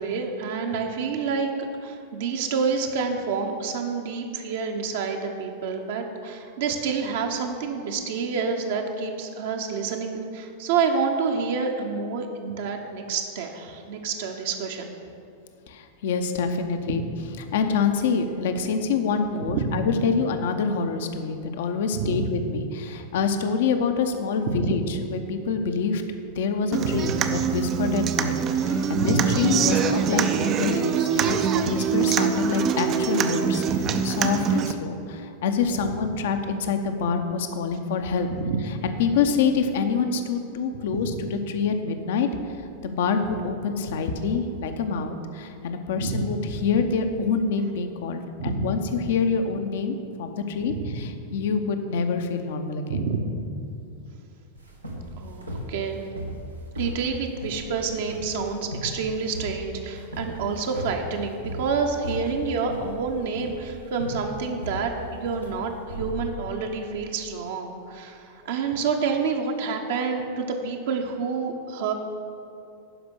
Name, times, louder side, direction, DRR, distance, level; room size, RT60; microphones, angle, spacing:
voice 1, 0.0-14.9 16.9-17.0 19.4-19.8 21.9-22.3 24.5-24.7 26.8-27.2 28.9-29.5 31.2-31.4 33.7-34.0 35.8-35.9 38.3-38.6 40.9-41.2 46.0-46.3 48.4-48.8 50.7-51.0 52.9-53.4 55.2-56.0 56.8-71.9, right 5 dB, 55° right, 3 dB, 1.0 m, -28 dB
voice 2, 15.7-17.0 17.5-24.8 25.1-26.0 26.4-33.6 34.0-38.3 38.8-42.3 42.8-53.0, left 5 dB, 55° left, 7 dB, 0.8 m, -26 dB
Human voice / Acoustic guitar, 26.7-34.7, right 7 dB, 30° right, 0.5 m, -24 dB
sound 1, 54.6-66.8, equal, 85° right, 1.3 m, -37 dB
11.5 x 5.1 x 6.4 m, 2.6 s
figure-of-eight pair, 90°, 0 cm